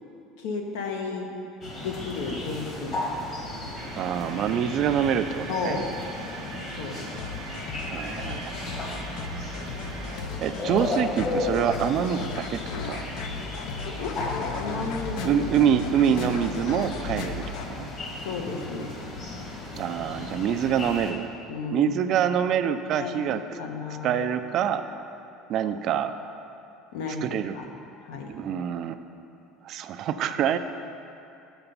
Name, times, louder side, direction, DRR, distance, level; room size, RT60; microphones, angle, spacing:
voice 1, 0.4-1.3 1.8-3.2 5.5-5.9 6.8-7.1 14.0-14.2 14.5-15.4 18.2-18.9 21.5-22.2 22.8-24.2 26.9-27.7 28.0-28.3, left 4 dB, 85° left, 2 dB, 1.0 m, -33 dB
sound 1, 1.6-21.1, left 2 dB, 35° left, 1.3 m, -35 dB
sound 2, 3.8-10.2, right 5 dB, 60° right, 0.8 m, -42 dB
voice 2, 4.0-5.8 7.9-8.6 10.4-13.2 15.2-17.9 19.8-21.4 21.7-23.4 24.0-24.8 25.5-26.1 27.2-27.5 28.3-28.9 29.6-30.6, right 9 dB, 45° right, 10 dB, 0.3 m, -26 dB
sound 3, 7.2-17.7, left 5 dB, 70° left, 0.5 m, -36 dB
7.0 x 5.8 x 5.4 m, 2.7 s
cardioid pair, 150°, 0 cm